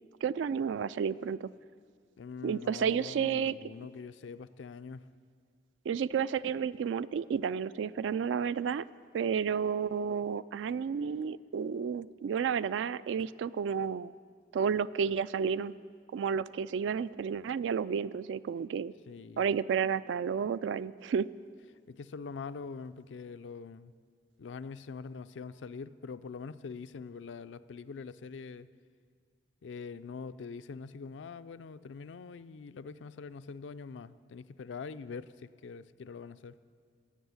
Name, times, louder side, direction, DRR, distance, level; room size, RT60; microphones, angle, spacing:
voice 1, 0.2-1.5 2.4-3.5 5.9-8.8 9.1-14.1 14.5-15.7 16.1-18.9 19.4-21.3, right 7 dB, 80° right, 16 dB, 0.3 m, -31 dB
voice 2, 2.2-5.1 19.1-19.6 21.9-23.9 24.4-28.7 29.6-36.6, left 5 dB, 85° left, 13 dB, 0.4 m, -44 dB
15.0 x 6.3 x 9.5 m, 2.1 s
head